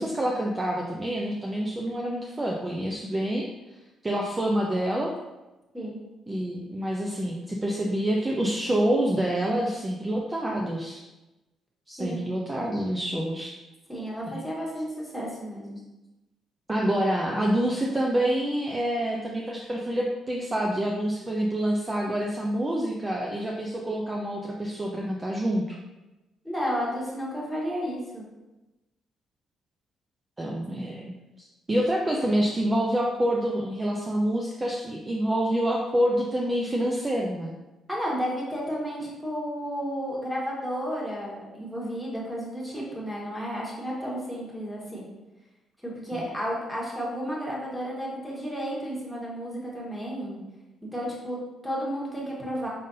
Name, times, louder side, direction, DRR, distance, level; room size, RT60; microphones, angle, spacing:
voice 1, 0.0-3.5 4.0-5.1 6.3-11.0 11.9-13.5 14.3-14.4 16.7-25.8 30.4-37.5 46.1-46.2, right 1 dB, 20° right, -1 dB, 0.5 m, -27 dB
voice 2, 13.9-15.8 26.4-28.3 37.9-45.0 45.8-50.4 50.8-52.7, equal, ahead, -5 dB, 1.5 m, -32 dB
5.2 x 3.7 x 2.7 m, 1.0 s
cardioid pair, 90°, 0 cm